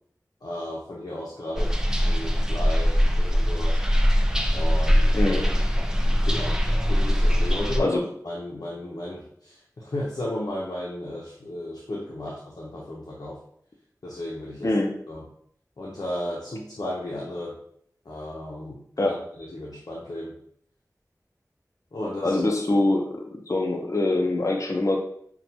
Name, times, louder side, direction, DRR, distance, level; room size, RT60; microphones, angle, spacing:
voice 1, 0.4-1.7 2.0-3.8 4.5-5.3 6.2-6.6 6.8-13.4 14.0-14.7 15.1-15.2 15.8-17.6 18.1-20.3 21.9-22.4, left 1 dB, 90° left, -5 dB, 0.6 m, -34 dB
sound 1, 1.6-7.8, equal, 10° right, 0.4 m, -22 dB
voice 2, 5.1-5.5 7.8-8.0 14.6-14.9 19.0-19.2 22.2-25.0, left 2 dB, 50° left, 1 dB, 0.6 m, -24 dB
5.6 x 2.3 x 2.7 m, 0.65 s
wide cardioid pair, 45°, 7 cm